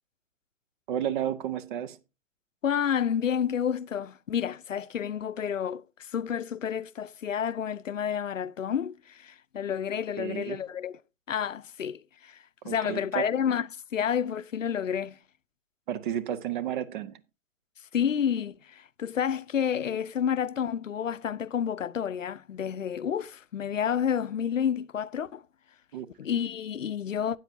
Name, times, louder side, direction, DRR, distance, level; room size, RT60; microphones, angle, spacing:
voice 1, 0.9-2.0 10.2-10.6 12.6-13.3 15.9-17.2 25.9-26.1, right 10 dB, 40° right, 0.8 m, -32 dB
voice 2, 2.6-10.9 11.3-15.2 17.9-25.4 26.2-27.4, left 8 dB, 85° left, 0.6 m, -30 dB
13.0 x 9.0 x 2.7 m
figure-of-eight pair, 115°, 38 cm